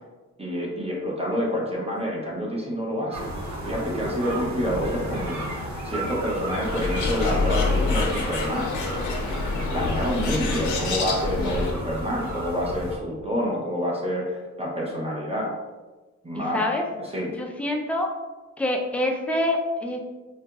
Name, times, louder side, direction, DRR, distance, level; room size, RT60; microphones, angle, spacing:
voice 1, 0.4-3.3 3.6-8.7 9.7-15.5 16.2-16.6 17.0-17.3, equal, 20° right, -4 dB, 0.8 m, -28 dB
sound 1, 3.1-13.0, equal, 70° right, 0.7 m, -32 dB
Bird, 6.6-11.7, left 3 dB, 85° left, 0.6 m, -27 dB
voice 2, 16.3-16.8 17.4-18.1 18.6-20.1, left 1 dB, 5° left, 1 dB, 0.4 m, -26 dB
3.8 x 2.5 x 2.3 m, 1.2 s
wide cardioid pair, 105°, 29 cm